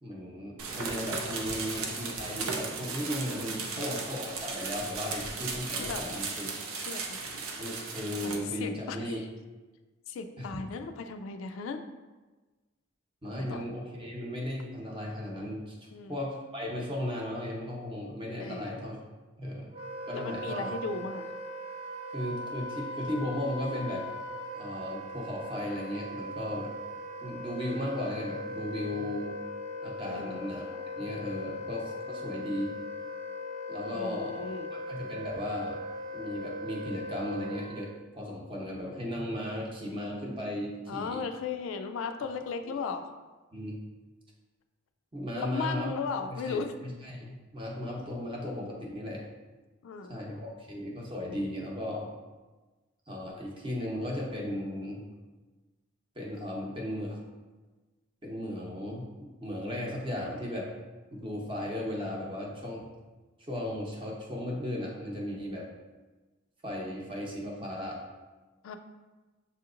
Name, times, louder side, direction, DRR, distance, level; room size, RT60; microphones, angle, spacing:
voice 1, 0.0-6.5 7.6-9.2 10.4-10.6 13.2-15.8 16.1-19.0 19.4-19.7 20.1-20.7 22.1-24.0 24.5-26.7 27.2-29.4 29.8-32.7 33.7-34.5 34.9-35.8 36.1-37.9 38.1-41.2 42.2-42.3 42.7-42.8 43.5-43.8 45.1-45.9 46.3-49.2 50.1-52.1 53.1-55.0 56.2-57.2 58.2-60.7 61.1-62.9 63.4-65.7 66.6-68.0, left 1 dB, 25° right, -2 dB, 0.7 m, -36 dB
sound 1, 0.6-8.4, right 4 dB, 90° right, 0.6 m, -36 dB
voice 2, 3.6-3.9 5.7-6.2 6.7-7.6 8.2-9.1 10.1-11.8 13.5-13.6 15.9-16.2 18.4-18.7 20.1-21.3 30.0-30.4 33.9-34.7 40.9-43.1 45.4-46.7 49.8-50.6 68.6-68.8, left 5 dB, 75° left, 7 dB, 0.3 m, -37 dB
Wind instrument woodwind instrument, 19.7-37.9, left 1 dB, 70° right, 1.2 m, -39 dB
6.7 x 2.8 x 2.5 m, 1.2 s
head